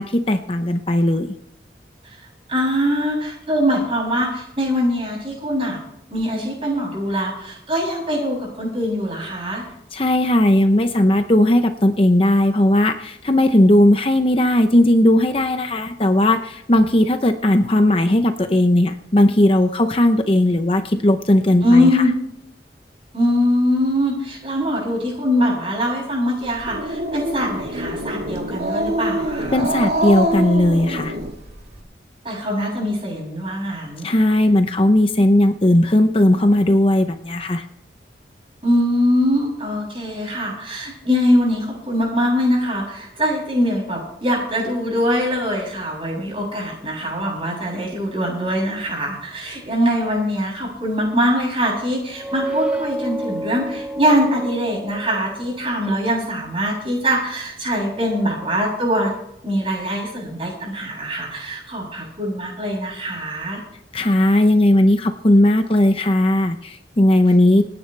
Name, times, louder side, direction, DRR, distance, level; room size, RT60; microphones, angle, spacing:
voice 1, 0.0-1.3 9.9-22.0 29.5-31.2 34.0-37.6 63.9-67.6, left 1 dB, 30° left, 7 dB, 0.7 m, -17 dB
voice 2, 2.5-5.8 6.1-9.6 21.6-22.1 23.1-29.7 32.2-34.1 38.6-59.1 59.4-63.6, equal, 30° right, -2 dB, 7.7 m, -22 dB
Growling, 26.4-31.8, right 1 dB, 65° right, 2.8 m, -25 dB
sound 1, 52.0-55.6, right 2 dB, 5° right, 1.3 m, -29 dB
27.5 x 9.8 x 3.4 m, 0.78 s
head